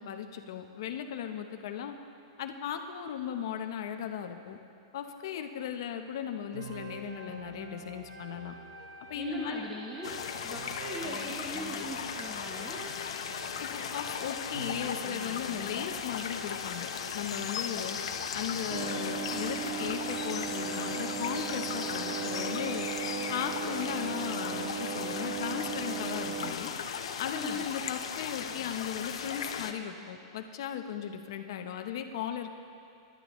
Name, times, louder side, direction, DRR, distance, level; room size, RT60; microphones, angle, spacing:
voice 1, 0.0-1.9 2.4-4.6 4.9-8.5 9.1-9.7 13.6-16.9 17.1-18.0 18.3-22.9 23.3-26.7 27.2-32.5, left 9 dB, 50° left, 6 dB, 0.8 m, -37 dB
sound 1, 6.5-22.6, right 2 dB, 55° right, 1.1 m, -47 dB
voice 2, 9.2-12.9 27.3-27.6, equal, ahead, -7 dB, 0.9 m, -40 dB
sound 2, 10.0-29.7, left 7 dB, 90° left, 0.8 m, -37 dB
sound 3, 18.7-26.5, right 7 dB, 40° right, 0.5 m, -37 dB
19.5 x 11.5 x 3.1 m, 2.5 s
supercardioid pair, 180°, 3 cm